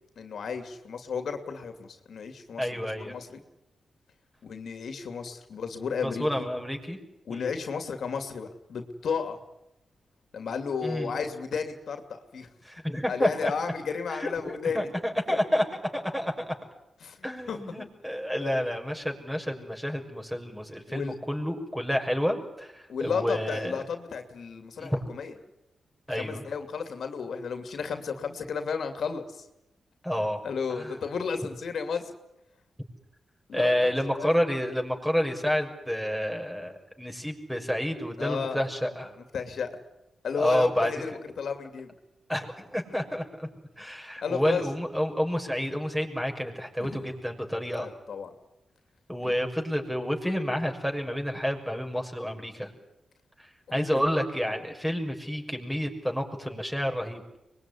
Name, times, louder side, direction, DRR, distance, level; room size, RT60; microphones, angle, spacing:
voice 1, 0.2-3.4 4.4-6.3 7.3-9.4 10.3-12.5 13.1-14.9 15.3-15.4 17.0-17.2 17.5-17.9 18.4-18.6 20.9-21.1 22.9-25.3 26.1-29.5 30.4-32.1 33.5-33.9 34.2-34.4 38.2-38.6 39.3-39.7 40.2-41.9 44.2-44.7 46.8-47.1 47.8-48.3 53.7-54.0, left 6 dB, 75° left, 7 dB, 2.7 m, -33 dB
voice 2, 2.6-3.1 6.0-7.0 7.3-7.5 10.8-11.1 12.6-13.5 14.1-15.6 15.9-16.5 17.2-23.8 24.8-25.1 26.1-26.4 30.0-30.4 30.7-30.9 33.5-39.2 40.3-40.9 42.3-43.5 43.8-47.9 49.1-52.7 53.4-57.2, equal, 5° right, 3 dB, 6.2 m, -29 dB
24.0 x 21.0 x 9.9 m, 0.88 s
cardioid pair, 55°, 0 cm